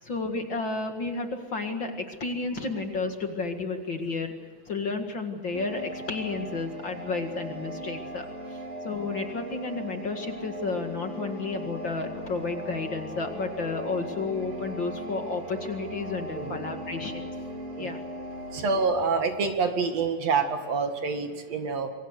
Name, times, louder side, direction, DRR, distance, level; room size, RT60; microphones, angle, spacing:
voice 1, 0.0-4.3 4.7-17.3 17.8-18.0, left 3 dB, 45° left, 5 dB, 2.4 m, -32 dB
sound 1, 5.5-18.9, right 1 dB, 85° right, 4.3 m, -38 dB
voice 2, 18.5-21.9, right 4 dB, 60° right, 6 dB, 3.1 m, -27 dB
27.5 x 23.5 x 6.6 m, 1.5 s
omnidirectional pair, 3.4 m